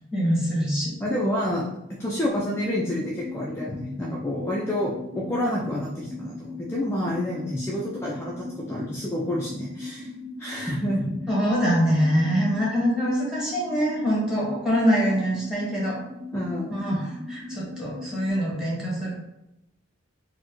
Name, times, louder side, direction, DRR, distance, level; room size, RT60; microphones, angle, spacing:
voice 1, 0.1-0.9 3.7-3.8 11.3-16.0 16.7-19.1, equal, 5° right, -6 dB, 1.2 m, -24 dB
voice 2, 1.0-1.7 2.0-10.1 10.4-11.1 16.3-16.8, left 1 dB, 15° left, -4 dB, 0.4 m, -28 dB
sound 1, 2.3-18.3, left 2 dB, 65° right, 0.9 m, -39 dB
4.3 x 2.1 x 2.9 m, 0.89 s
head